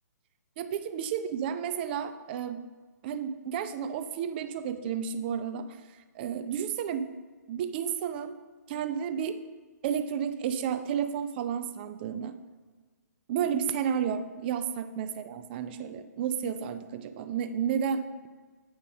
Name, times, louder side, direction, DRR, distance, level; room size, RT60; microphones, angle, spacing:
voice 1, 0.6-2.6 3.0-7.1 7.5-8.4 8.7-9.4 9.8-12.4 13.3-18.3, right 8 dB, 35° right, 11 dB, 0.6 m, -32 dB
8.7 x 4.1 x 6.4 m, 1.4 s
figure-of-eight pair, 130°, 10 cm